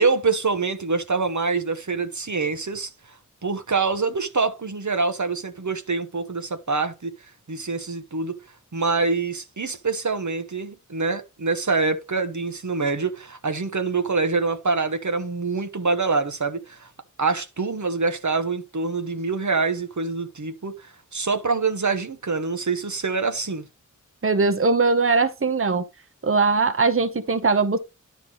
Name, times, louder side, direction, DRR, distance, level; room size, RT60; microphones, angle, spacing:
voice 1, 0.0-2.9 3.4-7.1 7.5-8.4 8.7-16.9 17.2-23.6, right 4 dB, 65° right, 1.0 m, -25 dB
voice 2, 24.2-25.8 26.2-27.8, right 4 dB, 45° right, 0.8 m, -20 dB
10.5 x 4.6 x 3.9 m
wide cardioid pair, 45°, 31 cm